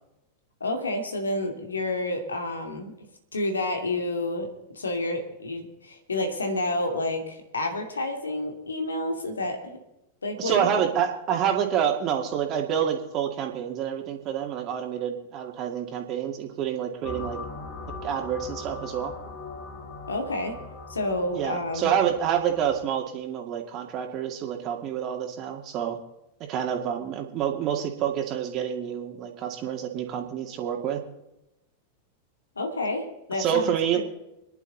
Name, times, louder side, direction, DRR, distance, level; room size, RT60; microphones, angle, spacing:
voice 1, 0.6-2.9 3.3-4.5 4.7-9.8 10.2-10.7 20.1-20.6 20.9-21.9 32.6-34.1, left 2 dB, 80° left, 4 dB, 2.6 m, -29 dB
voice 2, 10.4-17.4 18.0-19.1 21.3-26.0 26.4-31.0 33.4-34.2, right 9 dB, 40° right, 3 dB, 2.2 m, -28 dB
sound 1, 17.0-22.9, left 4 dB, 45° left, 2.6 m, -40 dB
25.5 x 10.5 x 4.0 m, 0.91 s
figure-of-eight pair, 95°, 0 cm